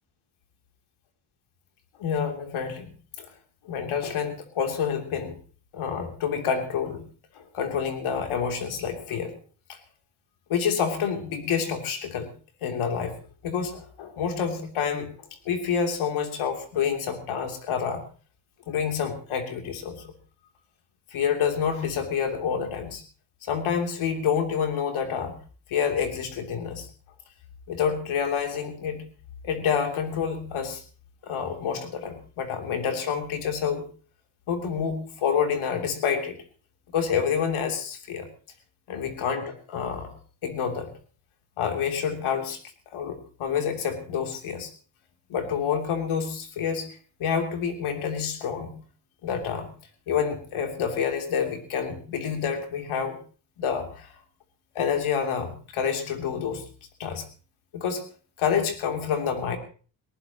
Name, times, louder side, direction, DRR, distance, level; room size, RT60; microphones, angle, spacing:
voice 1, 2.0-2.9 3.2-3.3 3.6-5.4 5.7-7.0 7.4-9.3 9.7-9.8 10.5-12.3 12.6-13.2 13.4-18.0 18.7-20.1 21.1-23.0 23.4-25.4 25.7-26.9 27.7-29.1 29.4-30.8 31.2-33.8 34.5-36.4 36.9-38.3 38.9-40.1 40.4-40.9 41.6-42.6 42.9-44.7 45.3-46.9 47.2-48.7 49.2-49.7 50.1-53.2 53.6-54.1 54.8-56.6 57.0-57.2 57.7-58.0 58.4-59.6, left 7 dB, 85° left, 4 dB, 3.3 m, -28 dB
19.5 x 18.0 x 3.0 m, 0.39 s
cardioid pair, 85°, 48 cm